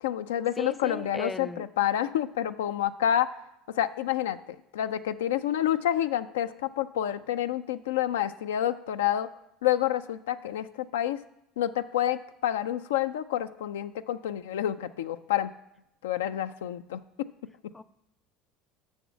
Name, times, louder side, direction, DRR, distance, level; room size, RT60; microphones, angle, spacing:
voice 1, 0.0-3.3 3.7-9.3 9.6-11.2 11.6-15.5 16.0-17.0 17.6-17.7, left 11 dB, 90° left, 10 dB, 0.4 m, -28 dB
voice 2, 0.6-1.6 17.7-17.8, left 2 dB, 15° left, 16 dB, 0.4 m, -36 dB
7.0 x 6.2 x 7.4 m, 0.82 s
hypercardioid pair, 85°, 0 cm